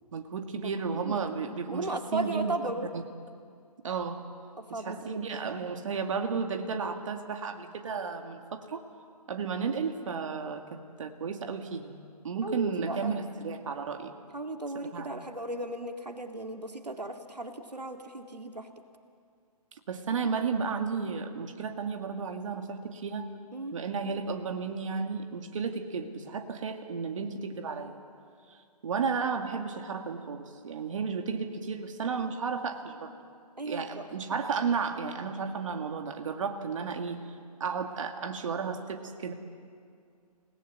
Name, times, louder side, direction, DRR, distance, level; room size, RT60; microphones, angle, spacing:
voice 1, 0.1-2.5 2.9-3.0 3.8-4.2 4.7-8.8 9.3-11.9 12.2-14.1 14.7-15.1 19.9-23.3 23.7-28.0 28.5-33.1 33.6-39.3, right 5 dB, 50° right, 5 dB, 2.2 m, -33 dB
voice 2, 0.6-1.2 1.7-2.9 4.6-5.2 12.4-13.2 14.3-18.7 23.5-23.8 33.6-34.1, right 2 dB, 90° right, 5 dB, 2.1 m, -36 dB
28.5 x 19.0 x 8.5 m, 2.3 s
figure-of-eight pair, 135°, 20 cm